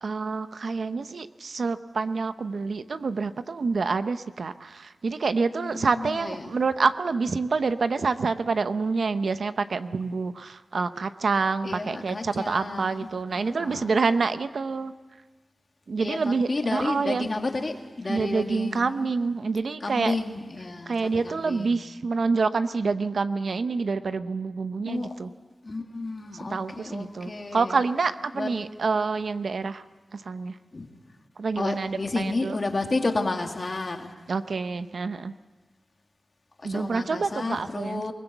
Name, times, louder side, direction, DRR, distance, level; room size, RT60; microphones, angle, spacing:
voice 1, 0.0-14.9 15.9-17.3 18.1-20.1 20.9-25.3 26.5-29.8 30.1-30.6 31.4-32.6 34.3-35.3 36.6-38.1, right 4 dB, 70° right, 11 dB, 0.7 m, -27 dB
voice 2, 5.6-6.5 11.6-13.1 13.4-14.0 16.0-19.1 19.8-20.9 21.2-21.9 24.8-25.1 25.6-27.8 28.3-28.5 30.7-30.9 31.6-34.1 36.6-38.1, left 3 dB, 40° left, 4 dB, 2.2 m, -31 dB
22.0 x 20.0 x 8.0 m, 1.3 s
wide cardioid pair, 110°, 0 cm